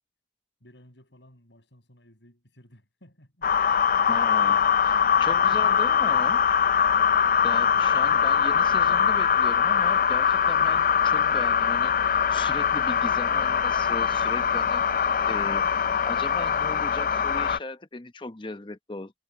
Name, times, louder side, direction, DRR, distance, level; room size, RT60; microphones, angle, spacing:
voice 1, 0.6-3.7 5.3-5.7 7.5-8.1, left 1 dB, 80° left, 7.8 m, -54 dB
sound 1, 3.4-17.6, left 7 dB, 50° left, 0.4 m, -22 dB
voice 2, 4.1-6.4 7.4-15.0 15.3-15.7 16.1-19.1, left 2 dB, 25° left, 0.8 m, -38 dB
head